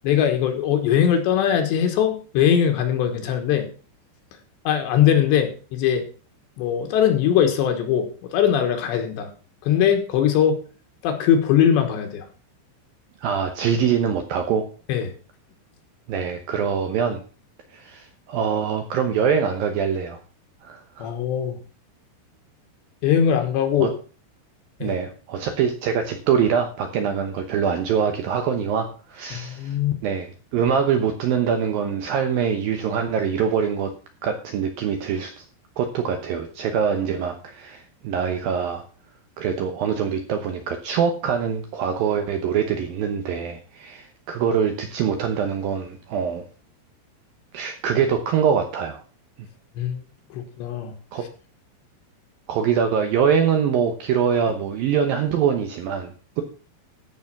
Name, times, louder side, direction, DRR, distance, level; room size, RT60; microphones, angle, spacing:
voice 1, 0.0-3.7 4.7-6.1 6.6-9.3 9.6-10.6 11.0-12.3 14.9-15.1 21.0-21.6 23.0-23.9 24.8-25.0 29.3-29.9 49.8-50.0 50.3-50.9, left 9 dB, 75° left, 5 dB, 3.5 m, -21 dB
voice 2, 13.2-14.7 16.1-17.2 17.7-20.2 20.6-21.1 23.8-23.9 24.8-29.8 30.0-33.9 34.2-35.4 35.8-38.8 39.4-46.4 47.5-49.0 51.1-51.2 52.5-56.4, right 7 dB, 75° right, 6 dB, 2.1 m, -24 dB
14.0 x 5.7 x 5.8 m, 0.38 s
omnidirectional pair, 5.4 m